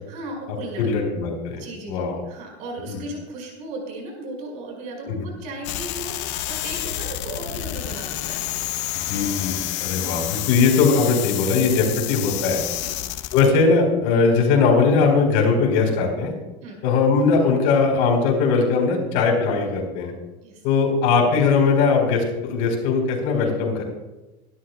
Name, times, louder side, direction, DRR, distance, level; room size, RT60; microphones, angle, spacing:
voice 1, 0.1-0.9 1.6-8.4 12.8-13.0 16.6-16.8 20.4-20.6, right 2 dB, 55° right, 1 dB, 5.3 m, -36 dB
voice 2, 0.8-2.2 2.9-3.0 5.1-5.2 9.1-12.6 13.3-16.3 16.8-20.1 20.6-23.8, left 4 dB, 60° left, 1 dB, 4.4 m, -20 dB
sound 1, 5.6-13.5, left 15 dB, 80° left, 0.8 m, -29 dB
23.5 x 12.5 x 2.3 m, 1.1 s
cardioid pair, 155°, 16 cm